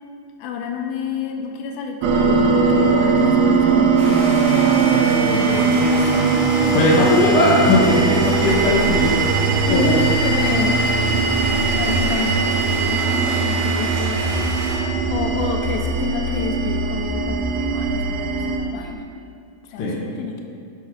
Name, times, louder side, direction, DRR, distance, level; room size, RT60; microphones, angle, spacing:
voice 1, 0.4-4.3 5.3-6.4 9.7-10.9 11.6-14.5 15.1-19.0 19.7-20.4, left 6 dB, 85° left, 3 dB, 2.5 m, -29 dB
sound 1, 2.0-18.6, right 4 dB, 75° right, 1.9 m, -19 dB
Stream, 4.0-14.8, equal, 45° right, 2.6 m, -30 dB
voice 2, 6.4-9.3 9.7-10.0 19.8-20.0, left 2 dB, 55° left, -6 dB, 1.6 m, -18 dB
11.0 x 5.6 x 4.9 m, 2.4 s
omnidirectional pair, 4.1 m